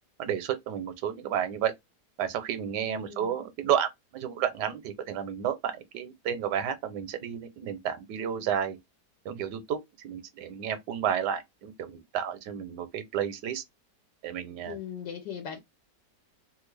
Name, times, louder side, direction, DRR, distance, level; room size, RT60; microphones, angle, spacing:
voice 1, 0.2-1.7 2.2-8.8 9.2-13.6 14.2-14.8, right 9 dB, 85° right, 1.3 m, -31 dB
voice 2, 2.8-3.3 14.6-15.6, left 8 dB, 85° left, 1.4 m, -39 dB
3.1 x 2.4 x 3.2 m
omnidirectional pair, 1.8 m